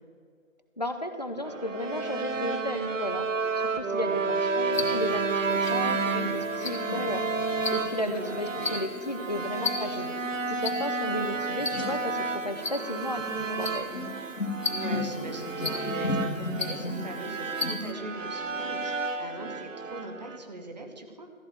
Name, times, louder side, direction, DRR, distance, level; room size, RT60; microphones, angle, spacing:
voice 1, 0.8-3.3 3.6-7.2 7.7-10.1 10.5-12.2 12.4-13.9, left 1 dB, 30° left, 8 dB, 0.6 m, -33 dB
sound 1, 1.4-20.4, right 4 dB, 65° right, 0.9 m, -31 dB
sound 2, 4.7-17.9, left 3 dB, 70° left, 2.0 m, -36 dB
voice 2, 8.0-8.4 14.7-21.3, right 2 dB, 30° right, 5 dB, 1.1 m, -40 dB
14.0 x 4.8 x 9.0 m, 2.2 s
figure-of-eight pair, 165°, 41 cm